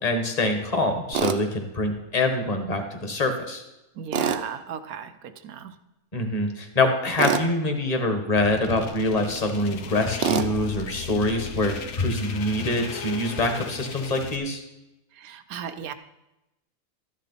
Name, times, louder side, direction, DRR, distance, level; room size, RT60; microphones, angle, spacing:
voice 1, 0.0-3.6 6.1-14.6, left 2 dB, 30° left, 4 dB, 1.5 m, -25 dB
Tools, 1.1-1.4 4.1-4.4 7.2-7.5 10.2-10.5, right 7 dB, 50° right, 0.8 m, -24 dB
voice 2, 4.0-5.8 15.1-15.9, right 8 dB, 80° right, 11 dB, 1.2 m, -36 dB
sound 1, 8.4-14.4, left 6 dB, 90° left, 1.5 m, -36 dB
13.0 x 10.0 x 4.1 m, 0.94 s
omnidirectional pair, 1.5 m